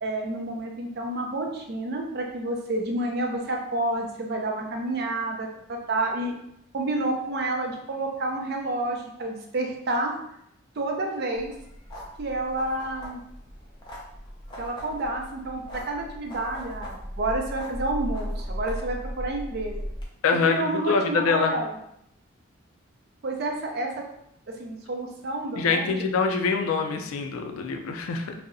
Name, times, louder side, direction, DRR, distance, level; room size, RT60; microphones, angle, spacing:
voice 1, 0.0-6.3 6.7-10.1 10.8-11.5 12.2-13.2 14.6-19.8 20.5-21.7 23.2-24.1 24.5-25.9, right 2 dB, 50° right, 1 dB, 0.4 m, -29 dB
sound 1, 11.3-20.1, equal, 20° left, 0.4 m, -37 dB
voice 2, 20.2-21.5 25.6-28.3, left 5 dB, 85° left, 4 dB, 0.3 m, -25 dB
2.6 x 2.0 x 2.5 m, 0.76 s
head